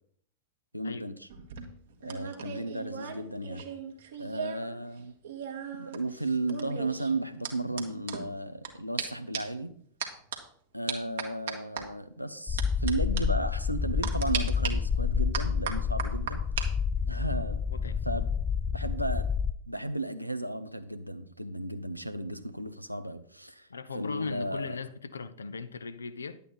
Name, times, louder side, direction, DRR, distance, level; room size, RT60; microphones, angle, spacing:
voice 1, 0.7-1.3 2.0-3.6 4.2-5.2 5.7-9.7 10.7-16.4 17.1-17.6 18.0-18.3 18.7-19.2 19.7-23.7 23.9-24.8, right 1 dB, 90° right, 0.7 m, -34 dB
sound 1, 1.3-4.7 5.0-8.7 9.0-9.1 9.3-9.6 10.0-10.4 10.9-11.8 12.6-12.9 13.2-13.3 14.0-14.7 15.3-16.7 17.0-17.3, right 7 dB, 60° right, 1.5 m, -37 dB
sound 2, 12.5-19.5, left 6 dB, 15° left, 0.3 m, -29 dB
voice 2, 23.7-26.4, left 5 dB, 75° left, 0.6 m, -39 dB
10.5 x 8.3 x 4.2 m
figure-of-eight pair, 90°, 0 cm